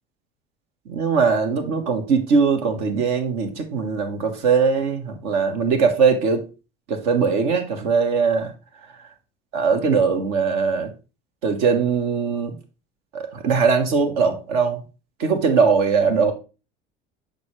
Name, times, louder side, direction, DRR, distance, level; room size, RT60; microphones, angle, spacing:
voice 1, 0.9-6.5 6.9-8.5 9.5-10.9 11.4-12.6 13.1-14.8 15.2-16.3, right 5 dB, 65° right, 5 dB, 1.4 m, -20 dB
6.7 x 5.1 x 3.3 m, 0.32 s
hypercardioid pair, 70°, 30 cm